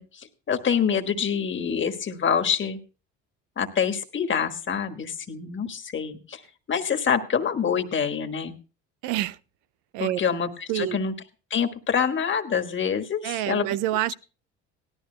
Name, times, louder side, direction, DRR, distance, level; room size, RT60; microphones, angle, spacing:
voice 1, 0.0-2.8 3.6-6.4 6.7-8.5 10.0-11.1 11.5-13.7, left 7 dB, 35° left, 1.4 m, -26 dB
voice 2, 9.0-9.4 9.9-10.2 10.7-11.0 13.2-14.1, right 14 dB, 70° right, 0.5 m, -27 dB
17.5 x 12.5 x 2.2 m
supercardioid pair, 80°, 32 cm